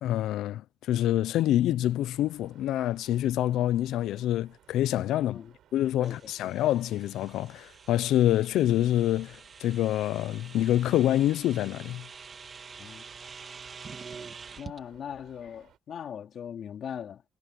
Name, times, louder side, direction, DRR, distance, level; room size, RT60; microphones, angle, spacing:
voice 1, 0.0-5.4 5.7-12.1, left 13 dB, 85° left, 0.6 m, -26 dB
sound 1, 2.1-15.8, right 11 dB, 75° right, 6.7 m, -61 dB
voice 2, 5.1-5.6 6.0-6.6 12.8-13.0 14.6-17.2, left 8 dB, 60° left, 3.6 m, -40 dB
sound 2, 6.0-14.8, right 5 dB, 40° right, 2.6 m, -47 dB
cardioid pair, 90°, 0 cm